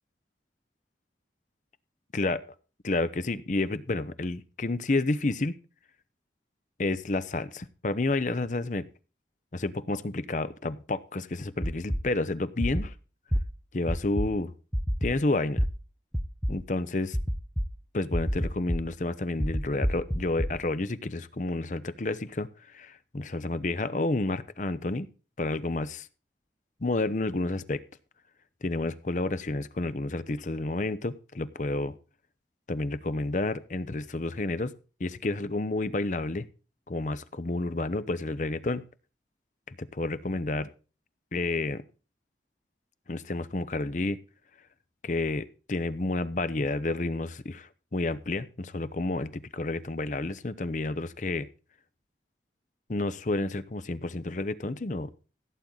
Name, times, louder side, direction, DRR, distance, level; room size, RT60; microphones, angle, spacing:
voice 1, 2.1-2.4 2.8-5.6 6.8-8.9 9.5-12.9 13.7-14.5 15.0-15.6 16.5-17.2 17.9-22.5 22.7-25.1 25.4-26.1 26.8-27.8 28.6-31.9 32.7-34.7 35.0-36.4 36.9-38.8 39.7-40.7 41.3-41.8 43.1-44.2 45.0-51.5 52.9-55.1, left 2 dB, 45° left, 14 dB, 0.7 m, -30 dB
sound 1, 11.6-12.0 12.6-12.8 13.3-13.4 13.9-14.3 14.7-15.1 15.6-15.7 16.1-16.5 17.1-17.7 18.1-18.8 19.4-20.5, equal, ahead, 0.6 m, -26 dB
16.5 x 8.7 x 3.9 m, 0.34 s
head